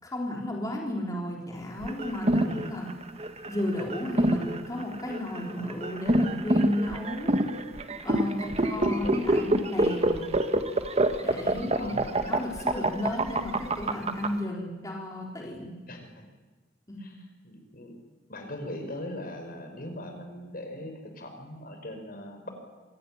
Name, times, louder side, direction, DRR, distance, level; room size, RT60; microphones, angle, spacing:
voice 1, 0.0-2.9 3.4-7.3 8.0-10.3 11.2-15.7 16.9-17.2, left 1 dB, 20° left, -2 dB, 3.9 m, -33 dB
sound 1, 1.8-14.3, right 1 dB, 35° right, 1.5 m, -26 dB
voice 2, 2.4-2.8 8.5-9.7 11.7-12.4 15.9-16.2 17.0-17.1 17.4-18.0 18.3-22.5, left 1 dB, 50° left, 5 dB, 4.6 m, -40 dB
26.0 x 17.5 x 9.9 m, 1.3 s
head